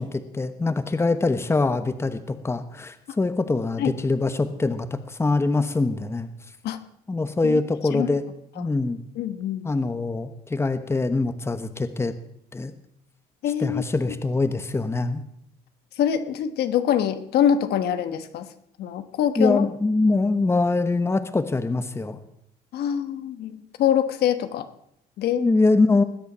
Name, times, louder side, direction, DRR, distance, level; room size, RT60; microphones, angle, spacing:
voice 1, 0.0-6.3 7.1-8.2 8.6-9.0 9.6-12.1 12.5-12.7 13.6-15.2 19.4-22.2 25.4-26.0, left 3 dB, 15° left, 10 dB, 1.1 m, -23 dB
voice 2, 9.2-9.6 13.4-13.8 16.0-18.5 18.8-19.7 22.7-24.7 25.2-25.4, left 9 dB, 70° left, 9 dB, 1.2 m, -24 dB
20.0 x 8.1 x 6.1 m, 0.74 s
cardioid pair, 110°, 17 cm